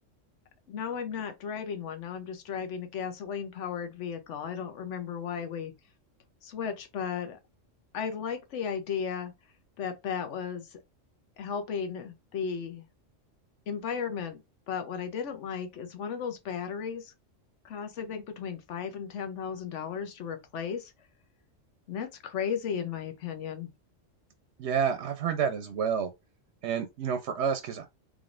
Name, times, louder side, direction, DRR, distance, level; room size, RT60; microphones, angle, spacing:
voice 1, 0.7-5.7 6.4-7.4 7.9-9.3 9.8-10.8 11.4-12.8 13.7-14.4 14.7-17.1 17.6-20.9 21.9-23.7, left 7 dB, 70° left, 1.1 m, -35 dB
voice 2, 24.6-26.1 26.6-27.9, right 7 dB, 65° right, 0.8 m, -29 dB
3.7 x 3.3 x 2.5 m
omnidirectional pair, 1.3 m